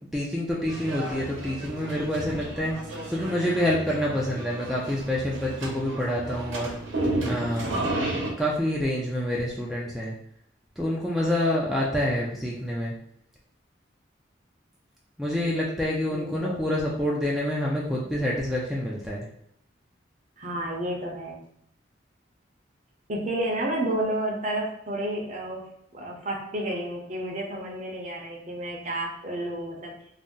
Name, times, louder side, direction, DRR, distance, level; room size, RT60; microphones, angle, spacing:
voice 1, 0.1-2.7 3.1-6.7 7.2-7.8 8.4-10.1 10.8-12.9 15.2-19.2, left 1 dB, ahead, -5 dB, 0.3 m, -27 dB
sound 1, 0.7-8.3, right 1 dB, 90° right, 0.8 m, -33 dB
voice 2, 16.1-16.6 20.4-21.4 23.1-25.7 25.9-29.9, right 1 dB, 40° right, 0 dB, 0.6 m, -31 dB
2.6 x 2.0 x 3.6 m, 0.74 s
head